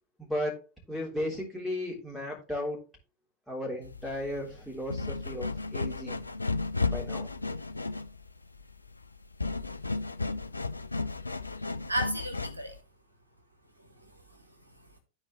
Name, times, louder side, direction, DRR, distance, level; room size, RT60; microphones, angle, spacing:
voice 1, 0.2-2.9 3.5-6.2 6.9-7.3, left 1 dB, ahead, 3.3 m, -35 dB
sound 1, 3.8-12.8, left 3 dB, 80° left, 0.4 m, -34 dB
voice 2, 11.9-12.8 13.8-15.0, right 1 dB, 85° right, 1.2 m, -36 dB
13.0 x 4.5 x 3.1 m
figure-of-eight pair, 90°, 0 cm